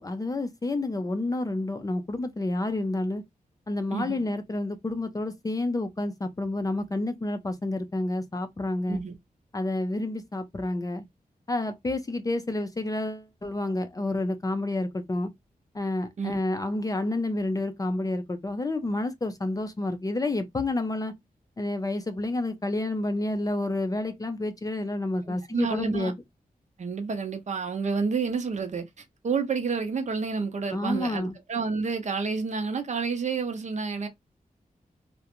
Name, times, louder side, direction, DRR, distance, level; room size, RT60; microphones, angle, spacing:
voice 1, 0.0-3.2 3.7-9.0 9.5-11.1 11.5-15.3 15.7-21.1 21.6-26.1 30.7-31.4, left 2 dB, 25° left, 0.4 m, -29 dB
voice 2, 3.9-4.2 8.9-9.1 16.2-16.4 25.3-26.1 26.8-34.1, right 5 dB, 55° right, 0.6 m, -29 dB
2.4 x 2.1 x 2.8 m
wide cardioid pair, 100°, 15 cm